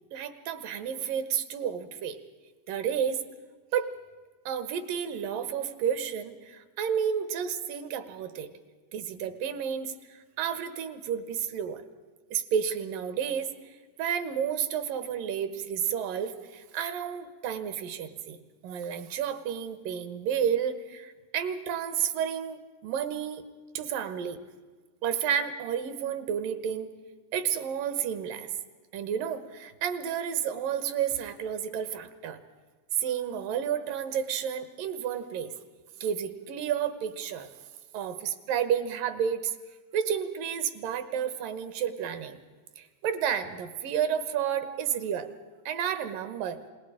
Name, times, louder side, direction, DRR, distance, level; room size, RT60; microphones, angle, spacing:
voice 1, 0.1-2.2 2.7-3.2 3.7-3.9 4.5-8.5 8.9-11.8 12.3-18.4 18.6-23.4 23.7-24.4 25.0-26.9 27.3-28.5 28.9-32.4 32.9-35.5 36.0-37.5 37.9-39.6 39.9-42.4 42.8-45.3 45.7-46.6, right 8 dB, 80° right, 11 dB, 2.8 m, -31 dB
28.5 x 20.5 x 4.9 m, 1.4 s
omnidirectional pair, 3.9 m